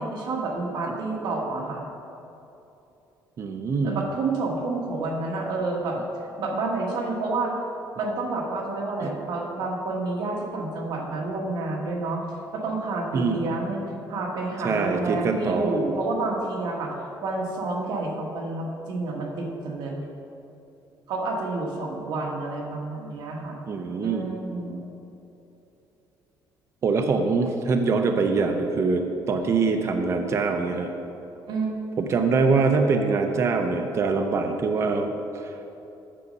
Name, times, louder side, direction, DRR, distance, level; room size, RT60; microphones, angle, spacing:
voice 1, 0.0-1.8 3.8-6.0 6.4-7.5 7.9-12.2 12.5-13.8 14.1-16.9 17.2-20.0 21.1-23.6 24.0-24.8 31.5-31.8, right 3 dB, 70° right, 0 dB, 1.5 m, -29 dB
voice 2, 3.4-4.0 9.0-9.1 13.1-13.5 14.6-15.8 23.7-24.3 26.8-30.9 32.0-35.5, right 4 dB, 40° right, 5 dB, 0.6 m, -24 dB
8.5 x 6.5 x 5.3 m, 2.8 s
cardioid pair, 140°, 8 cm